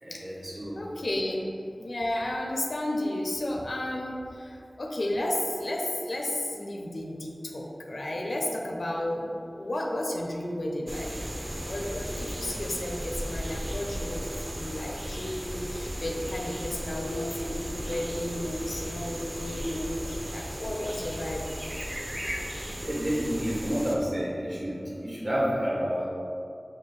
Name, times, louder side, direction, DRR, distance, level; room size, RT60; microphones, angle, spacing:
voice 1, 0.0-0.9 9.2-9.3 22.7-26.1, equal, 55° right, -6 dB, 1.2 m, -30 dB
voice 2, 0.8-1.5 1.8-9.3 9.6-11.1 11.7-21.5, left 1 dB, 80° left, 0 dB, 0.5 m, -33 dB
sound 1, 10.9-24.0, equal, 30° right, 0.5 m, -36 dB
4.2 x 2.3 x 4.7 m, 2.6 s
wide cardioid pair, 50°, 0 cm